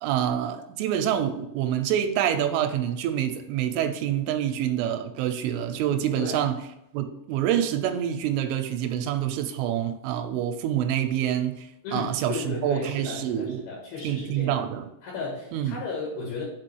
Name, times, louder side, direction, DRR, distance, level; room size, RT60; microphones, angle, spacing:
voice 1, 0.0-6.6 6.9-13.7 14.0-14.9 15.5-15.8, right 10 dB, 90° right, 8 dB, 3.2 m, -27 dB
voice 2, 11.8-14.6 15.0-16.4, left 4 dB, 60° left, -4 dB, 3.1 m, -34 dB
7.0 x 4.9 x 4.6 m, 0.83 s
omnidirectional pair, 5.6 m